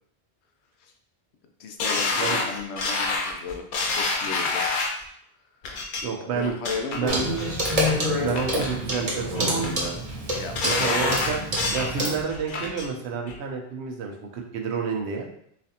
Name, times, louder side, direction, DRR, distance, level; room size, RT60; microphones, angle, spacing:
voice 1, 1.6-3.7 3.9-4.8 6.2-7.2 10.3-11.4 11.9-12.1, left 3 dB, 85° left, 4 dB, 0.9 m, -34 dB
sound 1, 1.8-5.0 5.6-6.0 6.4-7.0 7.4-7.9 8.3-9.0 9.3-9.9 10.3-11.9 12.3-12.9 13.3-13.4, left 3 dB, 60° left, 0.7 m, -27 dB
voice 2, 6.0-6.5 6.9-7.3 8.2-10.0 10.6-11.4 11.7-15.3, right 5 dB, 85° right, 2 dB, 0.9 m, -29 dB
Clock, 7.1-12.2, equal, 35° right, 0.8 m, -27 dB
4.1 x 2.5 x 2.7 m, 0.69 s
omnidirectional pair, 1.1 m